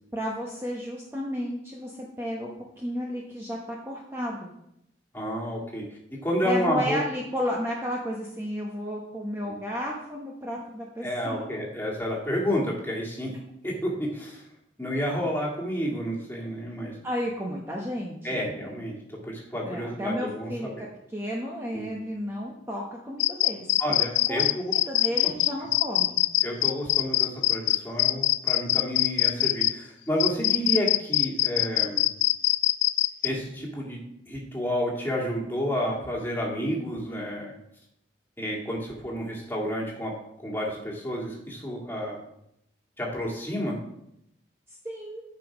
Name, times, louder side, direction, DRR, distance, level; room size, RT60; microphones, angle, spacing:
voice 1, 0.1-2.5 2.8-4.5 6.4-11.5 17.0-18.7 19.6-23.7 24.3-26.2 44.8-45.2, equal, 15° right, -2 dB, 0.9 m, -33 dB
voice 2, 5.1-7.0 11.0-13.3 13.6-14.4 14.8-17.0 18.2-20.5 21.7-21.9 23.8-24.7 26.4-32.0 33.2-34.0 34.3-37.5 38.4-40.2 40.4-42.2 43.0-43.8, equal, 10° left, -3 dB, 2.0 m, -30 dB
sound 1, 23.2-29.7 30.2-33.3, left 16 dB, 80° left, 0.4 m, -23 dB
9.4 x 5.4 x 4.9 m, 0.80 s
head